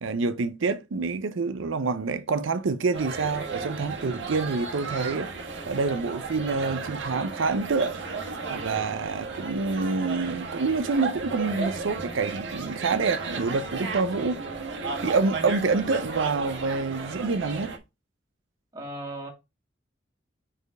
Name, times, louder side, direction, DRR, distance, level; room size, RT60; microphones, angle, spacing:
voice 1, 0.0-5.3 5.7-8.0 8.5-14.4 15.0-17.7, right 4 dB, 90° right, 0.5 m, -27 dB
sound 1, 2.9-17.8, right 4 dB, 70° right, 1.4 m, -34 dB
voice 2, 18.7-19.3, right 1 dB, 20° right, 1.9 m, -36 dB
5.0 x 4.5 x 4.6 m
head